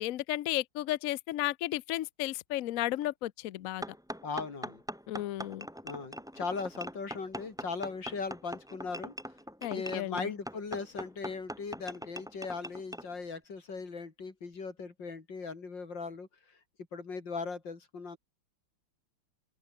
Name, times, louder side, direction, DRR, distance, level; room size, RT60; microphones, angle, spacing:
voice 1, 0.0-3.8 5.1-5.7 9.6-10.3, left 15 dB, 80° left, 0.7 m, -33 dB
sound 1, 3.8-13.1, equal, ahead, 3.7 m, -42 dB
voice 2, 4.2-4.8 5.8-9.1 9.6-16.3 16.9-18.2, left 4 dB, 60° left, 4.1 m, -38 dB
omnidirectional pair, 2.2 m